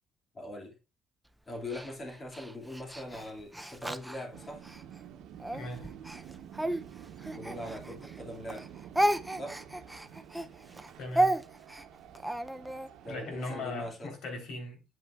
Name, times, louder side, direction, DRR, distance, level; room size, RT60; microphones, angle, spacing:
voice 1, 0.3-0.8 1.5-4.7 7.3-8.7 9.3-9.6 13.0-14.1, left 1 dB, 25° left, 2.4 m, -41 dB
Speech, 1.7-4.8 5.4-8.2 8.5-12.9, right 1 dB, 5° right, 0.5 m, -33 dB
sound 1, 4.3-13.9, right 9 dB, 90° right, 1.0 m, -49 dB
voice 2, 5.5-5.9 11.0-11.4 13.1-14.8, left 2 dB, 65° left, 3.8 m, -39 dB
9.2 x 8.8 x 2.4 m
cardioid pair, 160°, 0 cm